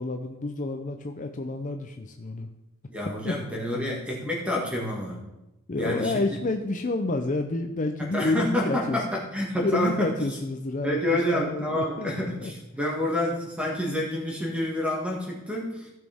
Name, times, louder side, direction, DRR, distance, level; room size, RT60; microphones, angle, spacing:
voice 1, 0.0-2.5 3.2-3.3 5.7-9.0 9.6-12.5, left 2 dB, 35° left, 5 dB, 0.5 m, -29 dB
voice 2, 2.9-5.2 5.8-6.2 8.0-10.1 10.8-15.9, left 1 dB, 5° right, -2 dB, 1.8 m, -28 dB
15.0 x 6.2 x 3.6 m, 0.95 s
head